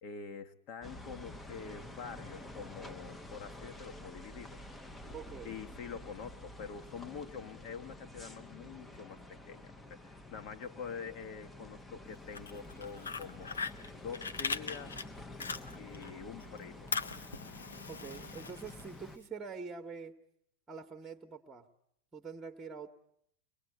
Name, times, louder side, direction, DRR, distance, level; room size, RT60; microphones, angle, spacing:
voice 1, 0.0-4.6 5.4-13.6 14.0-15.1 15.7-16.9, left 6 dB, 40° left, 6 dB, 1.5 m, -46 dB
sound 1, 0.8-19.2, left 1 dB, 10° left, 1.0 m, -49 dB
voice 2, 5.1-5.6 17.9-20.1 20.7-21.7 22.1-22.9, right 5 dB, 15° right, 5 dB, 1.4 m, -45 dB
Fire, 12.2-16.1 16.4-19.2, left 5 dB, 70° left, 0.9 m, -40 dB
23.5 x 20.5 x 8.0 m, 0.72 s
figure-of-eight pair, 90°, 0 cm